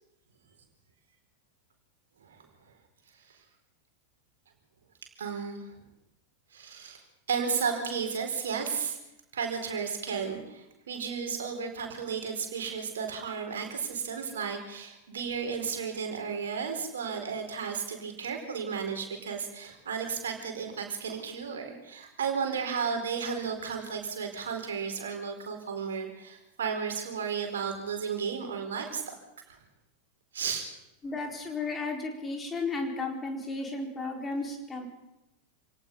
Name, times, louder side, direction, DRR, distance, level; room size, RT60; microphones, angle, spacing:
voice 1, 5.2-5.8 6.5-7.0 7.3-9.0 9.3-29.2 30.3-30.7, right 6 dB, 65° right, 4 dB, 4.3 m, -33 dB
voice 2, 31.0-34.9, left 3 dB, 15° left, 2 dB, 4.3 m, -34 dB
27.0 x 18.0 x 5.6 m, 0.90 s
figure-of-eight pair, 90°, 0 cm